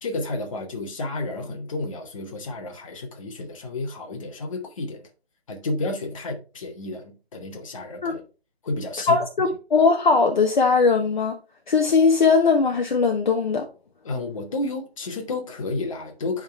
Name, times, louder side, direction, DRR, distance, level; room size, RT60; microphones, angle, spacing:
voice 1, 0.0-5.1 5.5-8.2 8.6-9.2 14.0-16.4, left 2 dB, 30° left, 1.2 m, -31 dB
voice 2, 9.1-11.3 11.7-13.7, left 4 dB, 50° left, 0.9 m, -19 dB
10.0 x 3.7 x 3.4 m
figure-of-eight pair, 165°, 31 cm